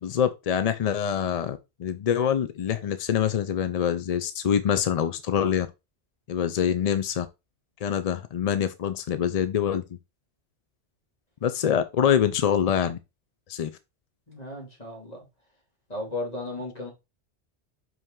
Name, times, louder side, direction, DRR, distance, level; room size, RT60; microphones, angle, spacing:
voice 1, 0.0-5.7 6.3-7.3 7.8-9.8 11.4-13.0 13.5-13.7, left 8 dB, 50° left, 0.4 m, -25 dB
voice 2, 14.3-15.2 15.9-16.9, left 2 dB, 35° left, 2.6 m, -35 dB
5.5 x 5.4 x 3.6 m
omnidirectional pair, 1.1 m